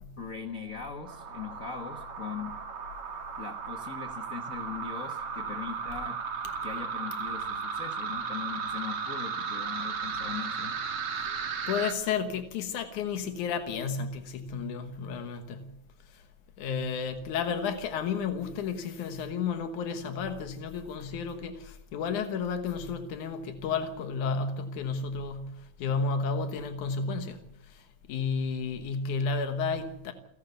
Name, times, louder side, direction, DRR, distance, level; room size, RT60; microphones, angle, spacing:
voice 1, 0.2-2.6 3.4-6.2 6.6-10.8, left 6 dB, 45° left, 1.1 m, -40 dB
sound 1, 1.1-11.9, right 5 dB, 65° right, 3.2 m, -35 dB
voice 2, 11.7-15.7 16.1-16.2 16.6-30.1, left 5 dB, 90° left, 2.7 m, -32 dB
29.0 x 11.5 x 8.0 m
omnidirectional pair, 3.4 m